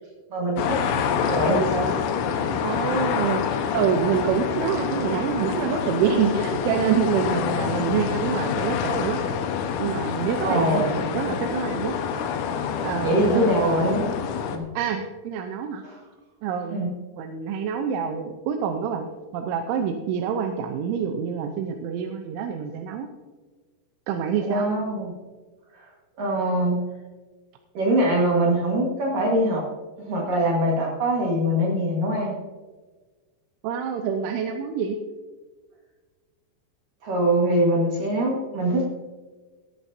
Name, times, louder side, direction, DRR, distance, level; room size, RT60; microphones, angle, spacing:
voice 1, 0.3-0.8 1.3-2.0 10.4-10.9 13.0-14.2 14.5-14.7 15.8-16.0 16.7-16.9 24.4-25.1 25.7-25.9 26.2-26.8 27.7-29.7 30.0-32.4 37.0-38.8, right 1 dB, 55° right, -3 dB, 2.8 m, -23 dB
sound 1, 0.6-14.6, left 7 dB, 85° left, 3.6 m, -27 dB
voice 2, 2.6-3.5 3.7-9.2 9.8-11.9 12.8-13.6 14.8-15.8 16.4-16.8 17.2-23.1 24.1-24.7 33.6-35.0, right 7 dB, 85° right, 5 dB, 3.2 m, -26 dB
17.5 x 11.5 x 2.7 m, 1.3 s
omnidirectional pair, 5.4 m